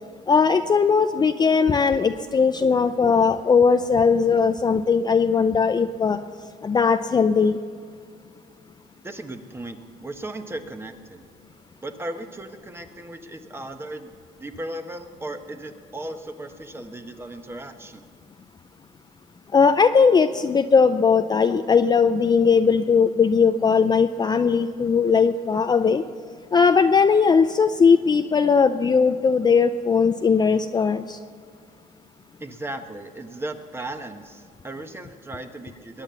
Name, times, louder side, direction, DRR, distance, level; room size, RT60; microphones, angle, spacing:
voice 1, 0.3-6.2 6.6-7.6 19.5-26.0 26.5-31.2, left 5 dB, 25° left, 8 dB, 0.5 m, -19 dB
voice 2, 9.0-11.3 11.8-14.1 14.4-18.1 32.4-36.0, right 1 dB, 15° right, 7 dB, 1.3 m, -36 dB
21.5 x 9.1 x 6.9 m, 2.3 s
cardioid pair, 110°, 17 cm